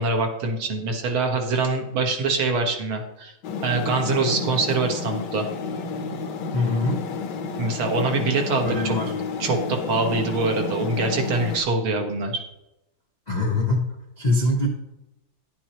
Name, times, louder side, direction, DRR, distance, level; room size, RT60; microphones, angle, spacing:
voice 1, 0.0-3.3 3.6-5.5 7.6-9.0 9.4-12.4, right 3 dB, 70° right, 3 dB, 2.1 m, -24 dB
sound 1, 3.4-11.6, left 4 dB, 65° left, 1.2 m, -31 dB
voice 2, 6.5-7.0 8.6-9.1 13.3-13.9 14.2-14.7, left 2 dB, 50° left, -1 dB, 0.5 m, -23 dB
11.0 x 10.0 x 3.0 m, 0.91 s
omnidirectional pair, 2.4 m